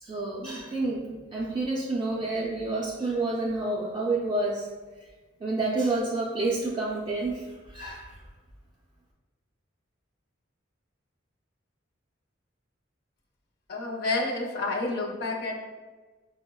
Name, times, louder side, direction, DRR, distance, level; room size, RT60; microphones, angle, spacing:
voice 1, 0.0-4.7 5.4-8.2, right 2 dB, 25° right, -4 dB, 0.3 m, -29 dB
voice 2, 13.7-15.6, left 2 dB, 55° left, 0 dB, 0.5 m, -29 dB
5.0 x 2.0 x 2.2 m, 1.3 s
head